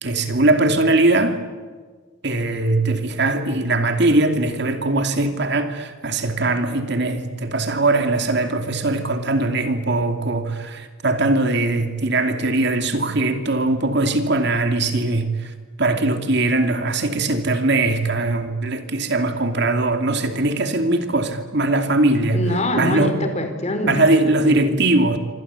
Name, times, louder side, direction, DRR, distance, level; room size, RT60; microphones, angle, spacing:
voice 1, 0.0-1.4 2.2-15.5 15.8-22.4 22.8-23.2 23.9-25.2, right 2 dB, 55° right, 2.7 m, -20 dB
voice 2, 22.3-24.8, left 1 dB, 35° left, 4.3 m, -24 dB
27.0 x 26.5 x 8.4 m
head